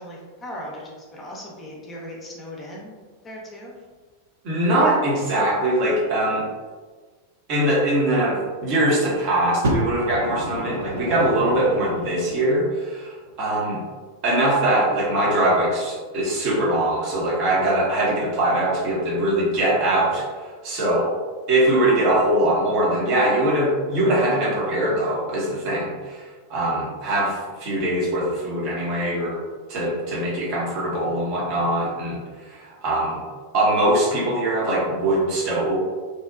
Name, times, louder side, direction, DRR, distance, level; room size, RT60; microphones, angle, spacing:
voice 1, 0.0-2.9 3.2-3.8, equal, 20° left, -3 dB, 0.5 m, -38 dB
voice 2, 4.4-6.5 7.5-13.8 14.2-20.3 20.6-21.1 21.5-29.4 29.7-32.2 32.5-33.2 33.5-35.8, right 1 dB, 40° right, -4 dB, 0.7 m, -22 dB
Fire, 9.6-12.5 13.3-13.4, right 1 dB, 65° right, 0.4 m, -29 dB
2.6 x 2.1 x 2.4 m, 1.4 s
figure-of-eight pair, 90°, 0 cm